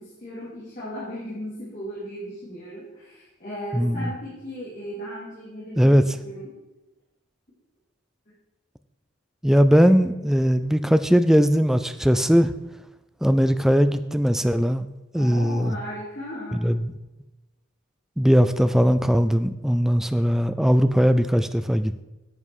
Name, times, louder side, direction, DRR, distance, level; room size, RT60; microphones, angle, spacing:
voice 1, 0.0-6.5 9.7-9.9 15.1-16.7, equal, 40° left, -9 dB, 3.0 m, -36 dB
voice 2, 3.7-4.1 5.8-6.0 9.4-12.5 13.2-14.9 15.1-15.8 16.6-16.9 18.2-22.0, equal, ahead, 11 dB, 0.3 m, -19 dB
11.0 x 7.5 x 4.9 m, 1.0 s
head